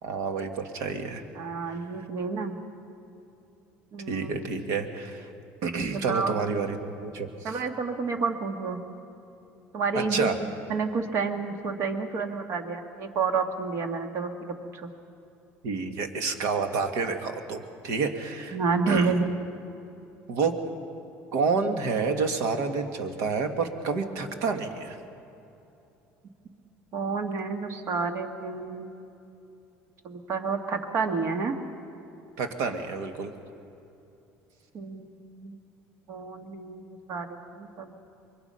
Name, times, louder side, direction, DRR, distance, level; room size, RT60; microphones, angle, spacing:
voice 1, 0.0-1.2 4.1-5.3 5.6-7.6 9.9-10.3 15.6-18.6 18.9-19.3 20.3-20.6 21.3-25.0 32.4-33.3, right 4 dB, 70° right, 6 dB, 2.0 m, -29 dB
voice 2, 1.4-2.6 3.9-4.4 5.9-6.4 7.4-8.8 9.7-10.3 10.7-14.9 18.5-19.3 26.9-28.9 30.0-31.5 34.7-35.6 36.1-38.0, right 4 dB, 55° right, 6 dB, 1.9 m, -30 dB
24.0 x 22.5 x 5.7 m, 2.8 s
cardioid pair, 120°, 5 cm